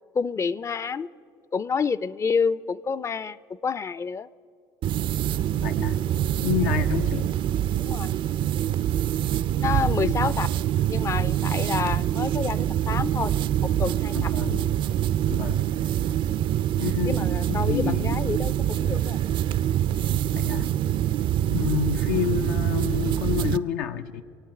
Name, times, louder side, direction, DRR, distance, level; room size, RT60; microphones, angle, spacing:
voice 1, 0.1-1.1 1.5-3.4 3.6-4.3 7.8-8.1 9.6-10.5 10.9-13.3 13.6-14.3 16.4-16.5 17.0-19.2, left 5 dB, 25° left, 19 dB, 0.4 m, -28 dB
sound 1, 4.8-23.6, right 11 dB, 50° right, 0.4 m, -25 dB
voice 2, 5.6-6.0 6.4-7.3 10.0-10.2 14.1-14.6 15.3-15.6 16.8-18.2 20.3-20.7 21.5-24.2, left 10 dB, 80° left, 7 dB, 0.5 m, -29 dB
24.0 x 9.1 x 5.7 m, 2.3 s
supercardioid pair, 80°, 11 cm